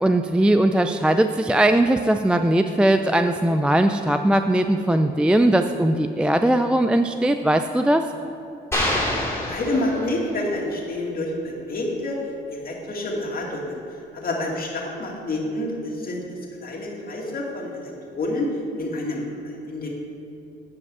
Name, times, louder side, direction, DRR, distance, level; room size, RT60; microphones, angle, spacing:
voice 1, 0.0-8.1, right 1 dB, 5° right, 7 dB, 0.3 m, -19 dB
sound 1, 8.7-10.4, left 1 dB, 10° left, 2.5 m, -26 dB
voice 2, 9.5-12.2 12.5-13.8 14.1-16.2 16.6-18.5 18.8-19.9, left 1 dB, 50° left, -1 dB, 2.2 m, -28 dB
9.4 x 5.2 x 7.9 m, 2.8 s
cardioid pair, 90°, 20 cm